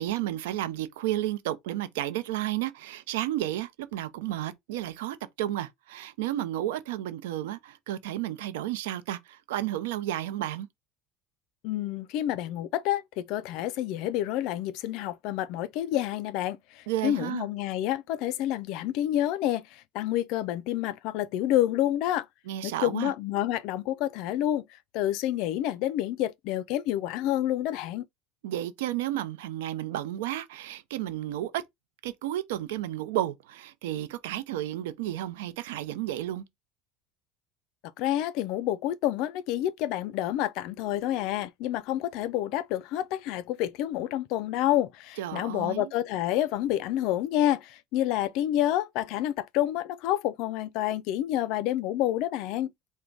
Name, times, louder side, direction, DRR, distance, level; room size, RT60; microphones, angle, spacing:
voice 1, 0.0-10.7 16.9-17.5 22.5-23.1 28.4-31.6 32.0-36.4 45.2-45.9, right 13 dB, 90° right, 0.6 m, -32 dB
voice 2, 11.6-16.6 17.0-19.6 19.9-22.2 22.6-24.6 24.9-28.0 38.0-52.7, left 13 dB, 65° left, 0.4 m, -28 dB
4.6 x 2.2 x 3.9 m
supercardioid pair, 125°, 0 cm